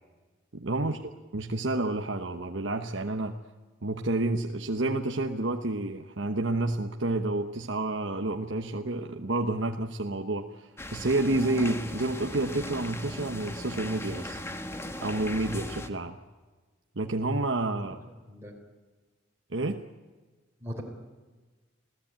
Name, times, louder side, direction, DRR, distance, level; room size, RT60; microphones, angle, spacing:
voice 1, 0.5-1.0 1.3-3.4 3.8-14.4 15.0-16.2 17.0-18.0 19.5-19.8, right 2 dB, 65° right, 4 dB, 1.2 m, -29 dB
sound 1, 10.8-15.9, left 1 dB, 15° left, 1.4 m, -38 dB
voice 2, 17.7-18.5 20.6-20.8, equal, 15° right, -1 dB, 4.1 m, -41 dB
27.0 x 16.5 x 8.9 m, 1.3 s
head